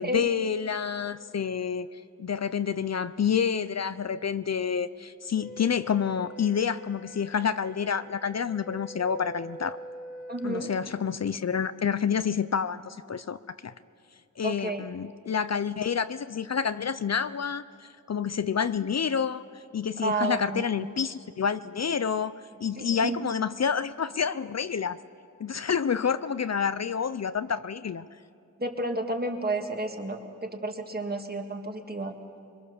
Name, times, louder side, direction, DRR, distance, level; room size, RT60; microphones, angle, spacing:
voice 1, 0.0-9.8 10.4-13.7 14.4-22.3 22.6-25.0 25.4-28.1, left 7 dB, 55° left, 13 dB, 0.6 m, -28 dB
Wind instrument woodwind instrument, 5.3-10.8, equal, 25° left, 2.0 m, -44 dB
voice 2, 10.3-10.7 14.4-14.9 20.0-20.9 22.8-23.2 28.6-32.1, right 2 dB, 30° right, 3 dB, 2.1 m, -31 dB
26.0 x 22.5 x 7.0 m, 2.4 s
wide cardioid pair, 95°, 32 cm